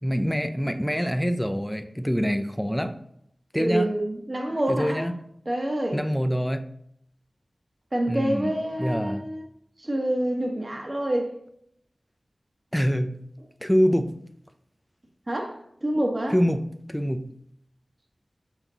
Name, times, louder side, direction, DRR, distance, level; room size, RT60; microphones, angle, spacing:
voice 1, 0.0-2.9 3.5-3.9 4.7-5.1 5.9-6.6 8.1-8.5 8.8-9.2 12.7-13.2 13.6-14.1 16.3-17.3, equal, 5° left, 0.5 m, -25 dB
voice 2, 3.5-5.1 5.4-6.0 7.9-9.4 9.8-11.3 15.3-16.4, right 1 dB, 35° right, 1.5 m, -27 dB
6.4 x 6.0 x 4.0 m
wide cardioid pair, 80°, 0 cm